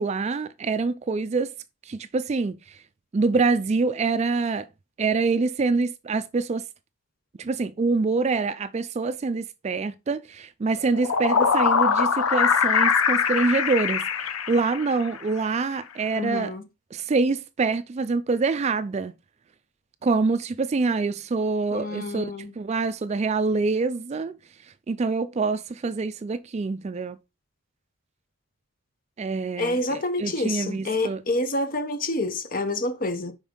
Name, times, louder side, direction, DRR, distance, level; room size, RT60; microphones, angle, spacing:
voice 1, 0.0-1.5 1.9-2.8 3.1-4.7 5.0-6.6 7.4-14.1 14.5-16.5 16.9-19.1 20.0-22.3 22.6-24.4 24.9-27.2 29.2-31.2, right 4 dB, 30° right, 0.3 m, -25 dB
sound 1, 10.8-15.2, left 6 dB, 90° left, 0.7 m, -22 dB
voice 2, 16.2-16.6 21.7-22.5 29.6-33.3, left 2 dB, 40° left, 0.8 m, -28 dB
5.2 x 5.1 x 3.8 m
head